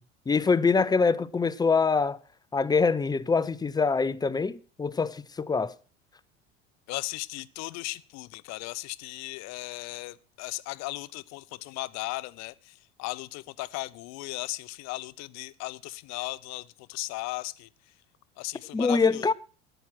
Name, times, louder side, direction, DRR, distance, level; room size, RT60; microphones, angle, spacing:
voice 1, 0.3-2.2 2.5-5.7 18.7-19.3, left 4 dB, 10° left, 0.6 m, -24 dB
voice 2, 6.9-17.7 18.4-19.3, left 21 dB, 50° left, 0.7 m, -37 dB
12.5 x 9.1 x 6.0 m
hypercardioid pair, 70°, 34 cm